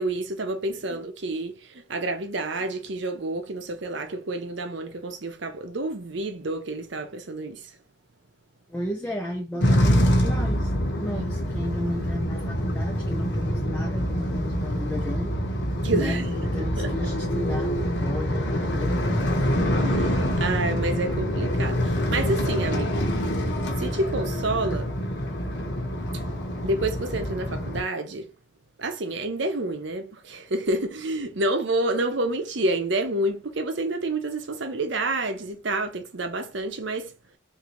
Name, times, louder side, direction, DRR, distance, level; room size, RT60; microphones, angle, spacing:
voice 1, 0.0-1.5 1.9-7.6 15.8-16.3 16.8-16.9 19.8-23.1 23.8-24.9 26.6-28.3 28.8-37.1, right 2 dB, 65° right, 0.7 m, -28 dB
voice 2, 8.7-15.6 15.9-19.5, left 1 dB, 10° left, 0.4 m, -34 dB
sound 1, 9.6-27.8, equal, 60° left, 0.9 m, -25 dB
3.8 x 2.7 x 3.0 m
head